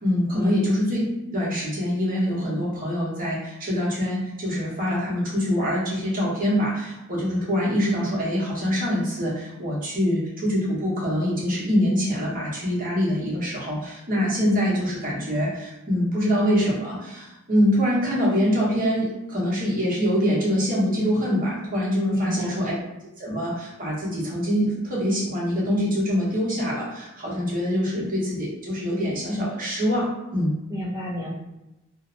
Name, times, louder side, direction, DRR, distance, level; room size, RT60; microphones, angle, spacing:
voice 1, 0.0-1.0 1.3-22.7 23.2-30.5, equal, 40° right, -6 dB, 0.9 m, -24 dB
voice 2, 22.1-22.7 30.7-31.3, equal, 15° right, -8 dB, 0.3 m, -30 dB
2.6 x 2.0 x 2.6 m, 0.96 s
head